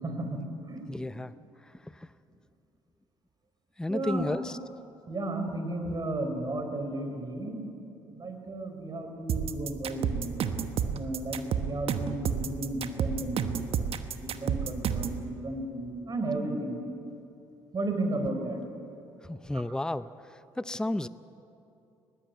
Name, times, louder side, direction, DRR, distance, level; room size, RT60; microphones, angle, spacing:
voice 1, 0.0-0.8 3.9-4.3 5.1-7.7 8.1-10.4 10.9-13.8 14.2-16.8 17.7-18.6, right 2 dB, 35° right, 5 dB, 4.3 m, -34 dB
voice 2, 0.9-1.3 1.8-2.1 3.8-4.6 19.2-20.1 20.6-21.1, left 1 dB, 5° left, 14 dB, 0.6 m, -32 dB
sound 1, 9.3-15.2, right 8 dB, 60° right, 1.1 m, -30 dB
20.0 x 15.0 x 9.5 m, 2.8 s
supercardioid pair, 60°, 11 cm